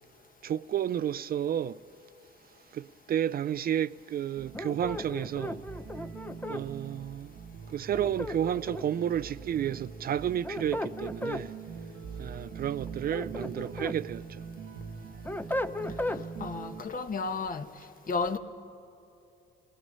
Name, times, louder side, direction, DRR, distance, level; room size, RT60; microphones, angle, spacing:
voice 1, 0.4-1.8 2.7-5.6 6.5-7.3 7.7-11.5 12.2-14.4, right 10 dB, 50° right, 0.4 m, -31 dB
sound 1, 4.4-16.8, right 6 dB, 75° right, 0.9 m, -43 dB
sound 2, 4.5-6.6 7.9-9.0 10.2-11.4 12.9-14.0 14.4-16.2, left 1 dB, 10° left, 0.6 m, -35 dB
voice 2, 16.4-17.7 18.1-18.4, left 4 dB, 45° left, 1.1 m, -32 dB
28.5 x 18.0 x 5.4 m
cardioid pair, 90°, 20 cm